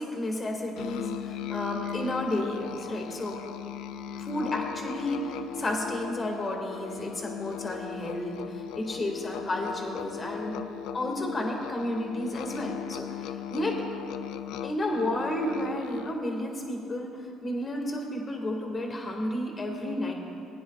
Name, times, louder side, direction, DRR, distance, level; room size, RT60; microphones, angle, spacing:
voice 1, 0.0-3.4 4.1-10.6 10.9-13.8 14.6-17.1 17.4-20.1, left 1 dB, 30° left, 0 dB, 2.1 m, -32 dB
Musical instrument, 0.8-16.3, left 9 dB, 80° left, 0.3 m, -38 dB
20.0 x 9.6 x 2.4 m, 2.7 s
cardioid pair, 95°, 0 cm